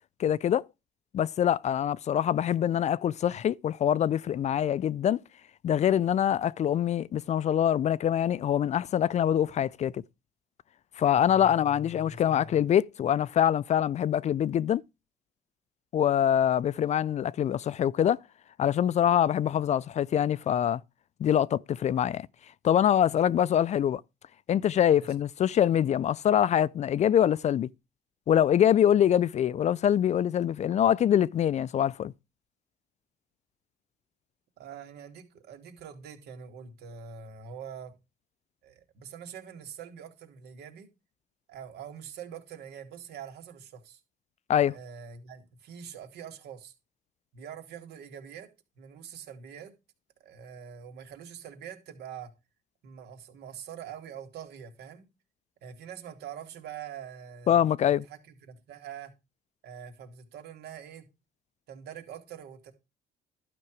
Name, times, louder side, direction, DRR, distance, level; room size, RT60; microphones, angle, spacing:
voice 1, 0.2-0.7 1.1-5.2 5.6-10.0 11.0-14.8 15.9-18.2 18.6-20.8 21.2-22.3 22.6-24.0 24.5-27.7 28.3-32.1 44.5-44.7 57.5-58.0, left 10 dB, 45° left, 0.4 m, -24 dB
voice 2, 11.2-12.6 25.0-25.1 34.6-37.9 38.6-40.9 41.5-44.0 44.7-46.7 47.3-48.5 48.8-49.7 50.2-52.3 52.8-55.0 55.6-59.1 59.6-61.1 61.7-62.7, right 7 dB, 75° right, 2.7 m, -44 dB
12.0 x 6.0 x 4.7 m
cardioid pair, 110°, 17 cm